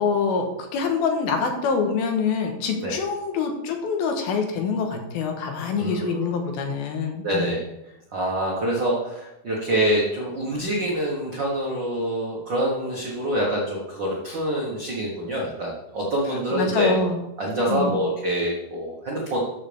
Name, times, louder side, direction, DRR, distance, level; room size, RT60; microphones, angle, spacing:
voice 1, 0.0-7.5 16.5-17.2 17.7-18.0, left 5 dB, 85° left, 4 dB, 3.0 m, -25 dB
voice 2, 5.8-6.3 7.2-7.6 8.1-17.0 17.4-19.4, right 1 dB, 65° right, -3 dB, 1.1 m, -26 dB
13.0 x 6.6 x 3.4 m, 0.93 s
omnidirectional pair, 4.3 m